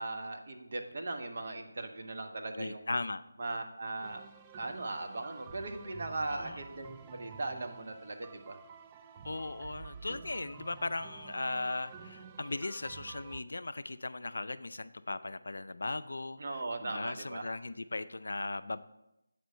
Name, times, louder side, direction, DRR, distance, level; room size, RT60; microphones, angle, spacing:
voice 1, 0.0-2.9 3.4-4.2 4.6-8.6 16.4-17.4, right 2 dB, 50° right, 4 dB, 1.0 m, -39 dB
voice 2, 2.5-3.2 6.3-6.6 9.2-18.8, left 2 dB, 70° left, 13 dB, 0.4 m, -38 dB
sound 1, 4.0-13.4, right 6 dB, 20° right, 0.3 m, -51 dB
7.8 x 5.1 x 5.5 m, 0.88 s
figure-of-eight pair, 160°, 0 cm